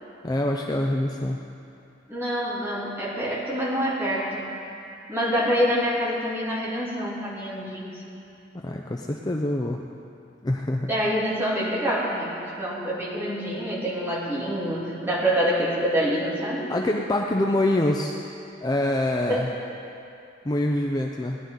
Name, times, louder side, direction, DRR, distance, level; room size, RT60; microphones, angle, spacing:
voice 1, 0.2-1.4 8.6-9.8 10.4-10.9 16.7-18.2 18.6-19.5 20.4-21.4, left 1 dB, 20° left, 1 dB, 0.5 m, -25 dB
voice 2, 2.1-4.5 5.1-8.1 10.9-16.7 19.3-19.5, equal, 15° right, -7 dB, 2.9 m, -26 dB
19.0 x 11.0 x 3.9 m, 2.6 s
head